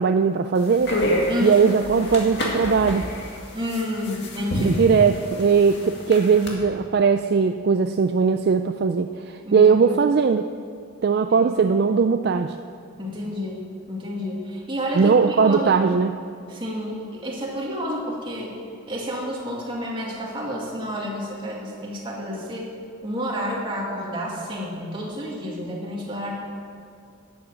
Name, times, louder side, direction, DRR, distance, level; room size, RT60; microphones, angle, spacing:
voice 1, 0.0-3.1 4.6-10.5 11.0-12.5 15.0-16.1, right 5 dB, 50° right, 8 dB, 0.3 m, -19 dB
sound 1, 0.6-6.5, equal, 55° left, 2.1 m, -28 dB
voice 2, 1.3-1.6 3.5-4.8 9.4-9.6 13.0-13.6 13.9-15.7 16.5-18.5 18.9-22.7 23.0-26.3, equal, 25° right, -3 dB, 2.2 m, -30 dB
12.0 x 8.6 x 7.6 m, 2.3 s
head